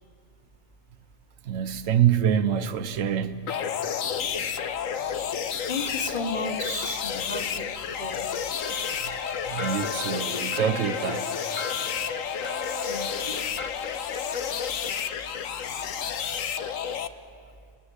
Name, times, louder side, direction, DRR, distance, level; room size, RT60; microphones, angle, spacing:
voice 1, 1.4-3.5 9.0-11.3, right 9 dB, 80° right, 1.3 m, -26 dB
sound 1, 3.5-17.1, left 7 dB, 85° left, 1.3 m, -31 dB
voice 2, 5.7-7.7 8.0-8.3 12.8-13.4, left 2 dB, 35° left, 3.1 m, -33 dB
sound 2, 8.6-13.7, left 2 dB, 10° left, 1.3 m, -38 dB
29.5 x 19.5 x 9.8 m
omnidirectional pair, 1.3 m